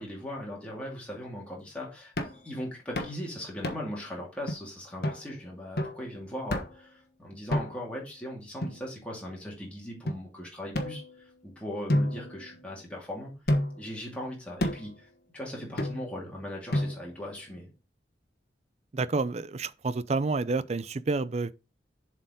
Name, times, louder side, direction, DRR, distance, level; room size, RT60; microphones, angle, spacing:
voice 1, 0.0-13.3 13.8-17.7, left 1 dB, 5° left, 2.6 m, -39 dB
sound 1, 2.2-2.4 3.0-3.2 3.6-4.0 4.5-4.6 5.0-5.2 5.8-6.0 6.5-6.9 7.5-8.0 8.6-9.3 10.1-10.2 10.7-11.4 11.9-12.9 13.5-13.9 14.6-15.0 15.8-16.2 16.7-17.2, left 1 dB, 60° left, 1.3 m, -31 dB
voice 2, 18.9-21.5, right 3 dB, 35° right, 0.4 m, -29 dB
7.2 x 4.5 x 5.1 m
head